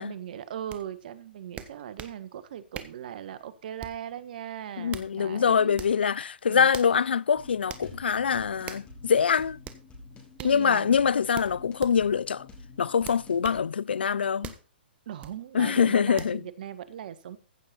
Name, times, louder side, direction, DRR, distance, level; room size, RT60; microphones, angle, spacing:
voice 1, 0.0-5.8 6.5-6.7 10.4-11.0 15.1-17.4, right 10 dB, 55° right, 1.3 m, -39 dB
sound 1, 0.7-0.8 1.6-2.2 2.7-3.0 3.8-4.1 4.7-5.1 5.7-6.0 6.7-7.0 7.7-7.9 8.7-8.9 9.6-9.8 10.4-10.6 11.3-12.0 13.0-13.6 14.4-14.7 15.2-15.4 16.2-16.4, right 9 dB, 20° right, 1.2 m, -41 dB
voice 2, 4.8-9.6 10.4-12.5 12.8-14.5 15.5-16.4, left 7 dB, 80° left, 0.5 m, -24 dB
sound 2, 7.4-13.6, left 3 dB, 20° left, 4.4 m, -48 dB
15.0 x 6.8 x 4.3 m
hypercardioid pair, 125°, 6 cm